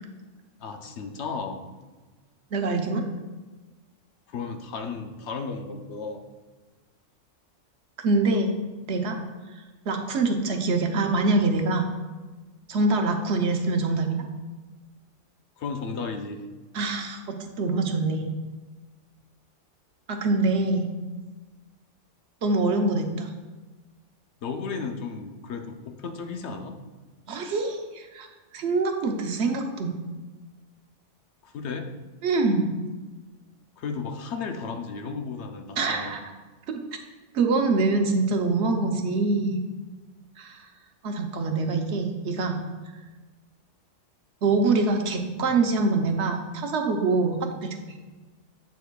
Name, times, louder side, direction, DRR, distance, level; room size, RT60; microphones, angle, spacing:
voice 1, 0.6-1.6 4.3-6.2 15.6-16.4 24.4-26.8 31.4-31.9 33.8-36.2, left 5 dB, 70° left, 5 dB, 0.9 m, -34 dB
voice 2, 2.5-3.0 8.0-8.5 8.9-9.2 9.9-11.9 12.7-14.2 16.7-18.3 20.1-20.9 22.4-23.3 27.3-28.3 28.5-29.9 32.2-32.7 35.8-36.2 36.7-36.8 37.3-39.6 40.4-40.6 41.0-42.6 44.4-48.0, right 3 dB, 65° right, 4 dB, 0.9 m, -24 dB
8.2 x 6.8 x 2.2 m, 1.3 s
omnidirectional pair, 1.3 m